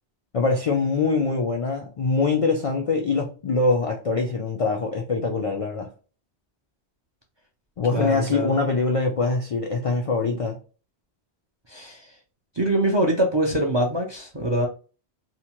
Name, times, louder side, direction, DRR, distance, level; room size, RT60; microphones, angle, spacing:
voice 1, 0.3-5.9 7.8-10.6, left 3 dB, 60° left, 0.3 m, -23 dB
voice 2, 7.9-8.5 11.7-12.1 12.5-14.7, right 1 dB, 40° right, 0.4 m, -24 dB
2.8 x 2.1 x 2.9 m
omnidirectional pair, 1.1 m